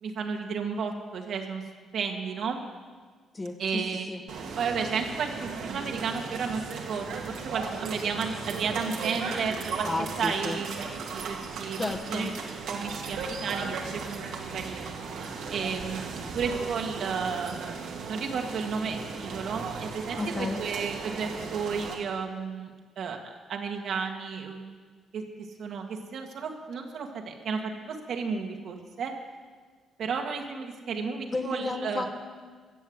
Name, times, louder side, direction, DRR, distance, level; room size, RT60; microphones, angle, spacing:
voice 1, 0.0-1.6 1.9-2.6 3.6-4.1 4.6-9.9 10.2-10.9 11.1-11.8 12.1-12.3 12.7-15.0 15.5-17.6 18.1-22.7 23.0-23.2 23.5-24.8 25.1-25.2 25.6-29.1 30.0-32.0, right 5 dB, 65° right, 3 dB, 1.8 m, -32 dB
voice 2, 3.3-4.2 9.8-10.6 11.8-12.3 20.2-20.6 31.3-32.2, left 2 dB, 25° left, 5 dB, 1.3 m, -32 dB
sound 1, 4.3-21.9, right 5 dB, 80° right, 2.0 m, -36 dB
14.5 x 7.3 x 7.9 m, 1.5 s
cardioid pair, 90°, 0 cm